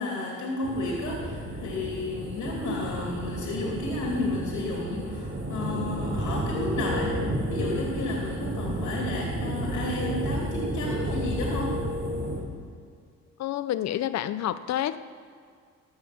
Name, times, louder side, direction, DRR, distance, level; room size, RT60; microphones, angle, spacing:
voice 1, 0.0-7.1 7.5-11.8, left 2 dB, 80° left, -2 dB, 2.5 m, -32 dB
sound 1, 0.6-12.4, right 1 dB, 45° right, 2.8 m, -32 dB
voice 2, 13.4-15.0, left 11 dB, 60° left, 13 dB, 0.6 m, -28 dB
15.5 x 5.7 x 5.9 m, 2.2 s
cardioid pair, 90°, 30 cm